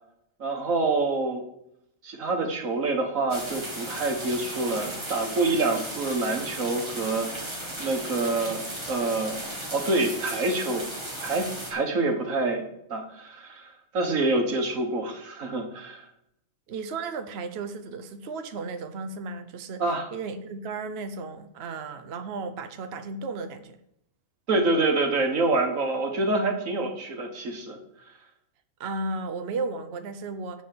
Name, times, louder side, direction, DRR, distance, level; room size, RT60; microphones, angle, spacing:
voice 1, 0.4-1.4 2.0-10.9 11.2-16.1 19.8-20.1 24.5-27.8, right 2 dB, 85° right, 4 dB, 1.8 m, -27 dB
sound 1, 3.3-11.7, right 1 dB, 20° right, 1.7 m, -36 dB
voice 2, 16.7-19.8 20.1-23.8 28.8-30.6, right 3 dB, 60° right, 8 dB, 0.9 m, -34 dB
7.3 x 6.2 x 7.6 m, 0.79 s
omnidirectional pair, 1.3 m